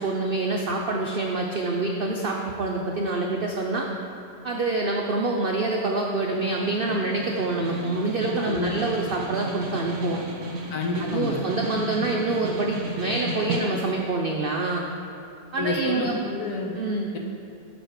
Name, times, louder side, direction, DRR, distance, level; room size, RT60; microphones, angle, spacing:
voice 1, 0.0-3.9 4.4-10.2 11.1-14.8 15.5-16.1 16.8-17.1, right 2 dB, 90° right, 0 dB, 0.4 m, -26 dB
Snare drum, 6.1-14.1, right 2 dB, 70° right, 1.6 m, -34 dB
voice 2, 8.4-8.7 10.7-11.4 15.5-16.7, left 3 dB, 70° left, 1 dB, 1.5 m, -29 dB
7.7 x 5.2 x 6.4 m, 2.8 s
omnidirectional pair, 1.8 m